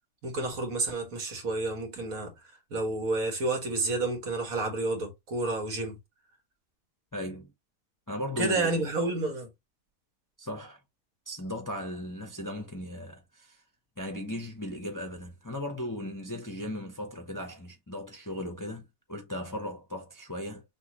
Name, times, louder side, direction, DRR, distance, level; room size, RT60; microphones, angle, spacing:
voice 1, 0.2-2.3 2.7-6.0 8.4-9.5, right 2 dB, 80° right, 1.9 m, -30 dB
voice 2, 7.1-7.5 8.1-8.9 10.4-10.8 11.3-13.6 14.0-20.6, left 1 dB, 20° left, 0.6 m, -37 dB
6.2 x 2.4 x 2.9 m
omnidirectional pair, 1.4 m